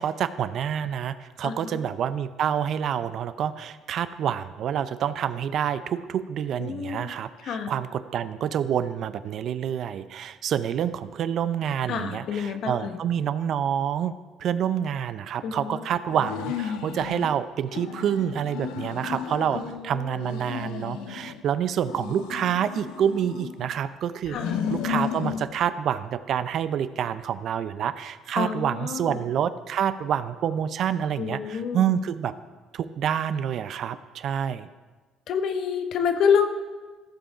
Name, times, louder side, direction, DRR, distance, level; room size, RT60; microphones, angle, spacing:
voice 1, 0.0-24.4 24.7-32.3 32.7-34.7, right 9 dB, 60° right, 13 dB, 0.5 m, -27 dB
voice 2, 1.4-1.8 6.6-7.1 7.4-7.7 11.9-13.0 15.4-15.8 19.5-20.4 24.3-24.6 28.3-29.3 31.2-31.9 35.3-36.5, left 7 dB, 65° left, 7 dB, 1.0 m, -28 dB
sound 1, 16.1-17.3 17.7-19.8 20.2-21.4 21.8-23.8 24.2-25.4, left 8 dB, 90° left, 0.7 m, -33 dB
14.5 x 5.1 x 5.0 m, 1.3 s
cardioid pair, 95°, 0 cm